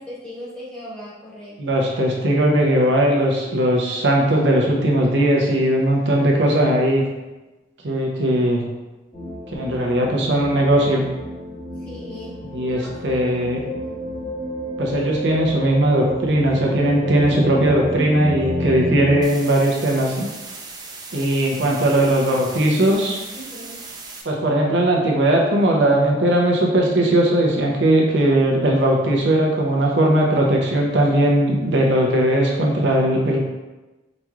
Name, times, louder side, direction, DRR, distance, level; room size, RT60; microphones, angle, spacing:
voice 1, 0.0-1.8 11.8-12.4 12.7-13.2 23.3-23.8, left 1 dB, 5° left, -8 dB, 1.2 m, -38 dB
voice 2, 1.6-7.0 7.8-8.6 9.5-11.0 12.5-13.6 14.8-20.3 21.1-23.2 24.2-33.4, right 1 dB, 85° right, -1 dB, 0.7 m, -18 dB
sound 1, 9.1-19.2, left 1 dB, 40° left, 1.4 m, -30 dB
sound 2, 19.2-24.2, right 3 dB, 25° right, 0.4 m, -37 dB
5.0 x 3.0 x 2.4 m, 1.1 s
head